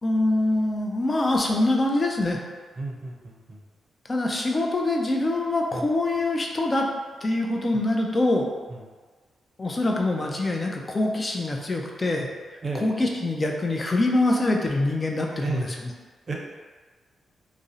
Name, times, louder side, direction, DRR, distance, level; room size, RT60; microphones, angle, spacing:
voice 1, 0.0-2.4 4.1-6.9 7.2-8.5 9.6-12.3 12.7-15.7, left 2 dB, 40° left, 1 dB, 0.4 m, -24 dB
voice 2, 2.8-3.6 5.7-5.8 8.7-8.8 12.6-12.9 15.4-15.7 16.3-16.4, right 3 dB, 50° right, -1 dB, 0.5 m, -32 dB
2.5 x 2.0 x 2.5 m, 1.4 s
supercardioid pair, 45°, 0 cm